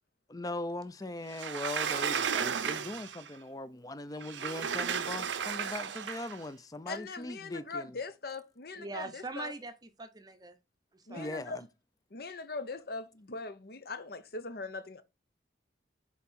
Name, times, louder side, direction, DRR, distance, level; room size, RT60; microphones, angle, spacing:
voice 1, 0.3-8.0 11.2-11.6, left 2 dB, 20° left, 0.5 m, -40 dB
Sliding door, 1.3-3.3 4.2-6.4, right 7 dB, 80° right, 0.6 m, -34 dB
voice 2, 6.9-9.5 11.1-11.6 12.1-15.0, left 3 dB, 55° left, 0.8 m, -41 dB
voice 3, 8.7-10.6 10.9-11.4, right 3 dB, 20° right, 0.7 m, -42 dB
5.8 x 4.8 x 4.1 m
head